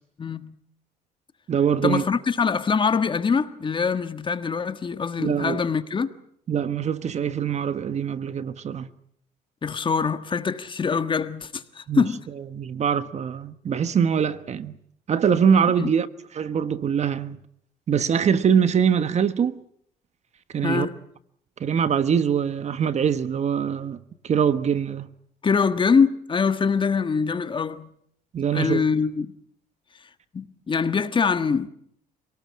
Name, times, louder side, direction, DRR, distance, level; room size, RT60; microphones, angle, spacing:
voice 1, 0.2-0.6 1.8-6.1 9.6-12.2 15.8-15.9 20.6-20.9 25.4-27.9 28.5-29.3 30.3-31.7, left 5 dB, 30° left, 1.6 m, -24 dB
voice 2, 1.5-2.0 5.2-5.6 6.5-8.9 11.9-12.0 12.5-14.7 15.1-16.1 16.3-17.4 17.9-19.6 20.5-20.9 21.6-24.0 24.2-25.1 28.3-28.9, right 7 dB, 40° right, 1.3 m, -23 dB
26.5 x 19.0 x 8.7 m
cardioid pair, 110°, 17 cm